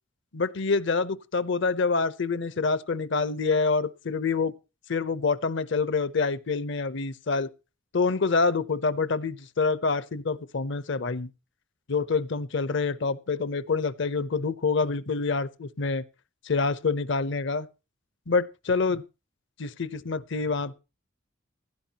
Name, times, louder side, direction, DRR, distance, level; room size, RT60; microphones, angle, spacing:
voice 1, 0.3-4.5 4.9-7.5 7.9-11.3 11.9-16.0 16.4-17.7 18.3-19.0 19.6-20.7, left 4 dB, 60° left, 0.7 m, -26 dB
16.0 x 12.0 x 2.9 m
head